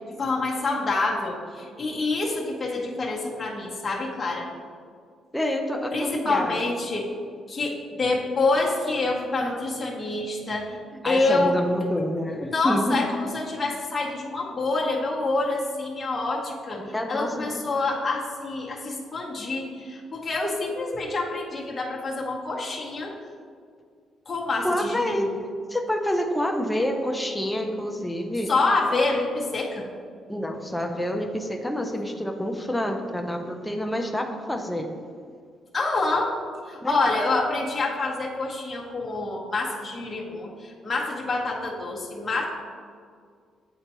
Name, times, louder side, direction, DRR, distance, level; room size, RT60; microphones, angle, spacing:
voice 1, 0.2-4.5 5.9-7.1 7.5-10.8 11.0-11.6 12.5-23.1 24.3-25.3 28.5-29.9 35.7-36.4 36.7-42.4, left 3 dB, 30° left, -3 dB, 0.9 m, -27 dB
voice 2, 5.3-6.6 11.0-13.0 16.8-17.5 24.6-25.3 25.7-28.5 30.3-34.9 36.8-37.0, equal, 5° left, 3 dB, 0.5 m, -27 dB
8.0 x 4.3 x 3.0 m, 2.1 s
cardioid pair, 90°, 0 cm